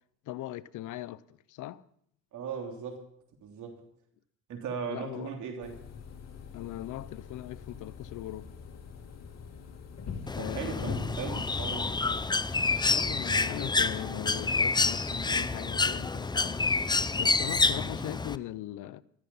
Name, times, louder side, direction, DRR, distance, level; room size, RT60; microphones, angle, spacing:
voice 1, 0.3-1.8 4.9-5.3 6.5-8.5 10.3-11.0 12.8-16.7 17.1-19.0, left 14 dB, 80° left, 0.7 m, -39 dB
voice 2, 2.3-3.0 3.4-3.8 4.5-5.8 10.3-12.0, right 6 dB, 75° right, 3.1 m, -38 dB
sound 1, 5.6-12.3, left 5 dB, 60° left, 2.7 m, -42 dB
Bird, 10.3-18.4, left 3 dB, 15° left, 0.6 m, -28 dB
14.5 x 13.5 x 5.5 m
cardioid pair, 90°, 30 cm